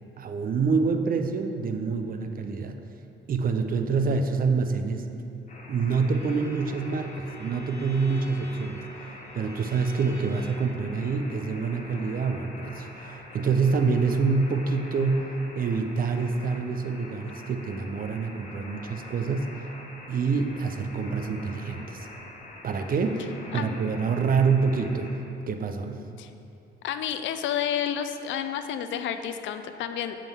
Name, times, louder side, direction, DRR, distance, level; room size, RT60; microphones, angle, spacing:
voice 1, 0.2-2.8 3.3-5.1 5.7-8.8 9.3-19.5 20.1-22.1 22.6-25.2 25.5-26.0, right 4 dB, 45° right, 7 dB, 0.5 m, -26 dB
sound 1, 5.5-25.1, left 2 dB, 35° left, 1.3 m, -45 dB
Bowed string instrument, 6.1-10.8, right 1 dB, 15° left, 1.0 m, -45 dB
voice 2, 26.8-30.2, left 9 dB, 75° left, 8 dB, 0.4 m, -30 dB
6.7 x 3.8 x 6.0 m, 2.7 s
cardioid pair, 90°, 20 cm